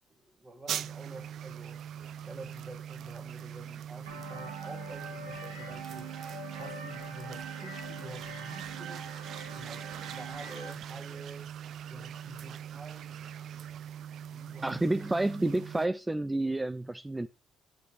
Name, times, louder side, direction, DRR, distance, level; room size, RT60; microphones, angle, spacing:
voice 1, 0.1-1.9 2.2-6.1 6.5-9.1 9.5-11.5 11.9-13.1 14.3-14.8, right 1 dB, 35° right, 2.7 m, -48 dB
sound 1, 0.7-15.9, right 9 dB, 65° right, 0.5 m, -42 dB
sound 2, 4.1-10.7, right 3 dB, 90° right, 1.9 m, -44 dB
voice 2, 14.6-17.3, right 2 dB, 15° right, 0.6 m, -29 dB
11.0 x 5.0 x 4.9 m
hypercardioid pair, 50°, 0 cm